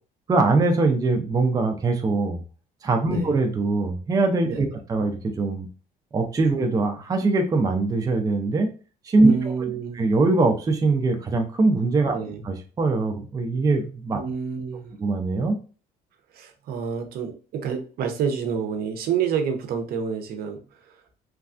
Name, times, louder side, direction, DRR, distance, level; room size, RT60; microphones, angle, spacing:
voice 1, 0.3-2.4 2.8-5.7 6.1-8.7 9.0-9.3 10.0-12.2 12.4-14.2 15.0-15.6, right 3 dB, 20° right, 4 dB, 0.4 m, -22 dB
voice 2, 9.2-10.0 12.1-12.4 14.1-15.0 16.3-21.0, right 7 dB, 65° right, 6 dB, 0.6 m, -29 dB
3.1 x 2.3 x 2.4 m, 0.36 s
cardioid pair, 110°, 17 cm